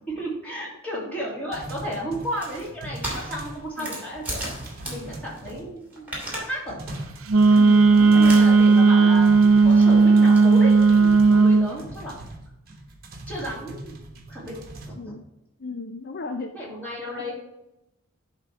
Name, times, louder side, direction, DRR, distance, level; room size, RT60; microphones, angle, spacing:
voice 1, 0.0-4.4 4.9-6.8 8.0-12.2 13.3-14.0 14.3-14.6 14.8-15.1 16.5-17.3, equal, 10° left, -6 dB, 2.8 m, -33 dB
sound 1, 1.5-3.7 3.9-5.9 6.3-6.4 6.7-8.8 9.2-14.9, right 1 dB, 45° right, 1.2 m, -41 dB
sound 2, 2.2-5.5 5.8-6.6 6.9-7.1 7.5-7.7 8.2-8.8 9.1-10.4, right 1 dB, 10° right, 2.7 m, -36 dB
Wind instrument woodwind instrument, 7.3-11.7, right 4 dB, 85° right, 0.5 m, -15 dB
voice 2, 7.5-8.5 11.9-12.0 15.0-15.2 15.6-16.5 17.0-17.3, left 3 dB, 50° left, 5 dB, 0.5 m, -36 dB
11.0 x 3.8 x 4.6 m, 0.88 s
head